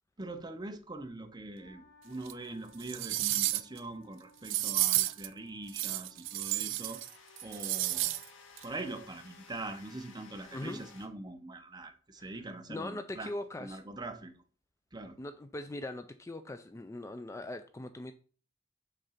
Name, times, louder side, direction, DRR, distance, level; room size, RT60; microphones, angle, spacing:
voice 1, 0.2-7.0 7.4-8.2 8.6-13.3 13.6-14.3 14.9-15.2, right 2 dB, 20° right, 0.8 m, -43 dB
Wind instrument woodwind instrument, 1.5-6.9, left 1 dB, 55° left, 2.9 m, -62 dB
sound 1, 1.6-1.7 6.2-11.1, left 5 dB, 90° left, 1.5 m, -56 dB
sound 2, 2.3-2.4 2.8-3.8 4.4-5.3 5.7-7.1 7.4-8.2 8.6-8.7, right 16 dB, 80° right, 0.5 m, -31 dB
voice 2, 12.7-13.8 15.2-18.1, left 1 dB, 15° left, 0.4 m, -41 dB
6.6 x 3.8 x 5.7 m
head